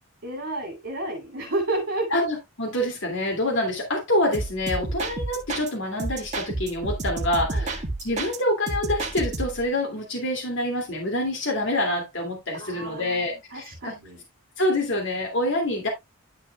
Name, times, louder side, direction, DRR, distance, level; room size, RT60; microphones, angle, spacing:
voice 1, 0.2-2.2 4.8-4.9 7.5-7.7 12.5-14.2, right 2 dB, 60° right, 2.8 m, -31 dB
voice 2, 2.1-13.9 14.6-15.9, left 1 dB, 55° left, 2.4 m, -26 dB
sound 1, 4.3-5.7 6.0-8.4 8.7-9.7, right 2 dB, 35° right, 1.7 m, -30 dB
11.5 x 6.8 x 2.3 m
head